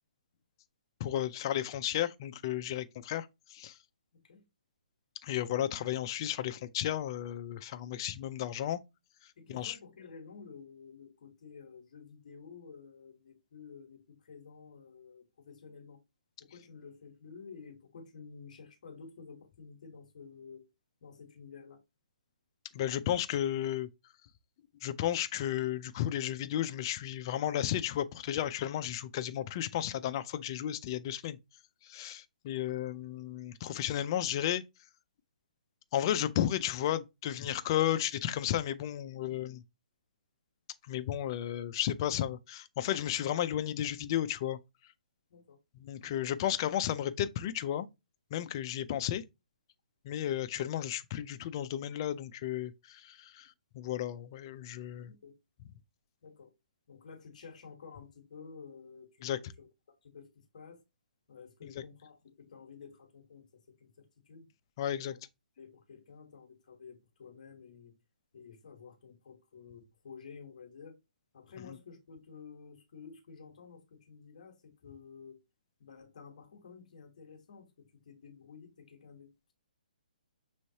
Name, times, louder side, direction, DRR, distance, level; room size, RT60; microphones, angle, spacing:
voice 1, 1.0-3.7 5.2-8.8 9.5-9.7 22.7-23.9 24.8-31.4 31.8-34.6 35.9-39.6 40.9-44.6 45.8-47.9 48.3-49.2 50.1-53.5 53.7-55.1 59.2-59.4 61.6-61.7 64.8-65.1, left 11 dB, 30° left, 0.4 m, -33 dB
voice 2, 4.1-4.4 9.4-16.0 16.4-20.7 21.0-21.8 32.5-32.8 45.3-45.6 55.0-55.4 56.2-56.5 56.9-59.7 60.0-60.8 61.3-64.5 64.9-65.2 65.6-67.9 68.3-71.0 71.3-75.4 75.8-79.5, left 5 dB, 55° left, 1.2 m, -52 dB
6.2 x 3.1 x 2.8 m
hypercardioid pair, 165°, 5 cm